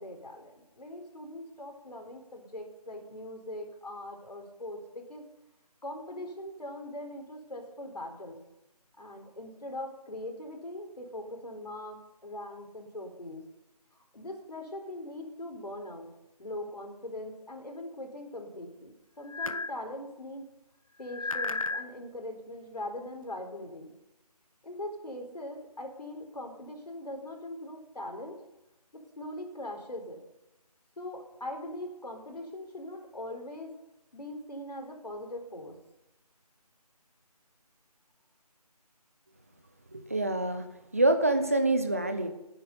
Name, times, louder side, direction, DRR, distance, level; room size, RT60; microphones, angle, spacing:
voice 1, 0.0-5.2 5.8-8.4 9.0-13.4 14.1-16.1 16.4-20.5 21.0-23.9 24.6-28.4 28.9-30.2 31.0-33.7 34.1-35.8, left 1 dB, 80° left, 4 dB, 4.1 m, -41 dB
sound 1, 19.3-19.8 21.0-21.9, left 3 dB, 55° left, 0.9 m, -33 dB
voice 2, 39.9-40.7 40.9-42.3, right 2 dB, 20° right, 7 dB, 0.9 m, -26 dB
18.5 x 10.0 x 5.4 m, 0.92 s
figure-of-eight pair, 175°, 20 cm